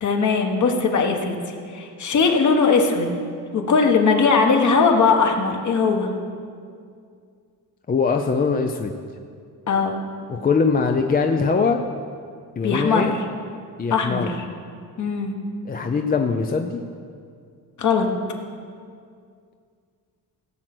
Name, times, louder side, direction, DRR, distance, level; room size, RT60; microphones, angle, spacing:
voice 1, 0.0-3.1 3.5-6.1 9.7-10.0 12.6-13.2 13.9-14.2 15.0-15.3 17.8-18.1, left 4 dB, 50° left, 3 dB, 1.5 m, -19 dB
voice 2, 7.9-8.9 10.3-11.8 12.6-13.2 13.8-14.3 15.6-16.8, left 5 dB, 25° left, 5 dB, 0.5 m, -22 dB
16.5 x 7.7 x 6.1 m, 2.3 s
cardioid pair, 155°, 38 cm